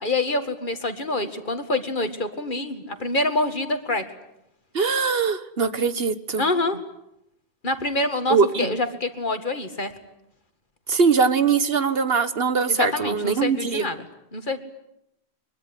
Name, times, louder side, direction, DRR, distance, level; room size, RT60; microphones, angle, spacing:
voice 1, 0.0-4.1 6.4-6.8 7.6-9.9 12.7-14.1 14.3-14.6, left 2 dB, 50° left, 8 dB, 2.2 m, -26 dB
voice 2, 4.7-6.4 8.3-8.7 10.9-13.9, right 5 dB, 65° right, 12 dB, 1.5 m, -22 dB
24.0 x 22.5 x 10.0 m, 0.80 s
omnidirectional pair, 1.1 m